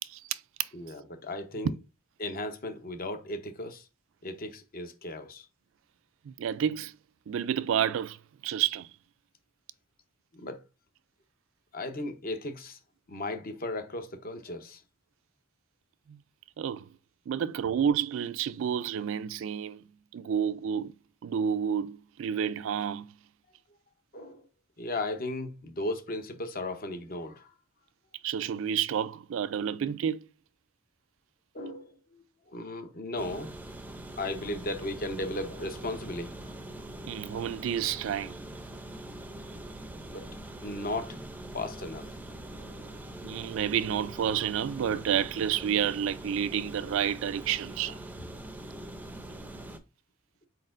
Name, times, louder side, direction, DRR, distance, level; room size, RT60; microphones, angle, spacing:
voice 1, 0.1-0.7 6.3-7.0 7.3-8.2 8.4-8.9 16.1-16.2 16.6-16.9 17.3-19.8 20.1-20.9 21.2-23.1 28.2-30.3 37.1-38.4 43.2-48.0, right 8 dB, 65° right, 0.3 m, -30 dB
voice 2, 0.7-1.7 2.2-3.8 4.2-5.4 10.3-10.6 11.7-12.8 13.1-14.8 24.1-24.4 24.8-27.5 31.5-31.9 32.5-33.5 34.2-36.5 40.1-40.3 40.6-41.2 41.5-42.1 42.6-43.0, left 2 dB, 45° left, 0.8 m, -36 dB
sound 1, 33.2-49.8, right 1 dB, 10° right, 0.5 m, -43 dB
4.4 x 4.1 x 2.5 m
head